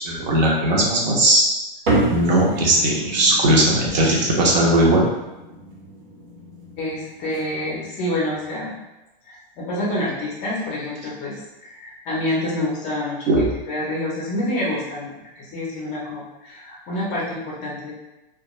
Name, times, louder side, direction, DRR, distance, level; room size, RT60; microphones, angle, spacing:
voice 1, 0.0-1.5 2.1-5.0 13.3-13.5, right 1 dB, 50° right, -3 dB, 0.7 m, -18 dB
sound 1, 1.9-8.6, right 2 dB, 70° right, 1.0 m, -29 dB
voice 2, 6.8-8.7 9.2-17.9, left 1 dB, 25° left, -5 dB, 0.5 m, -28 dB
2.3 x 2.3 x 2.9 m, 1.0 s
hypercardioid pair, 145°, 29 cm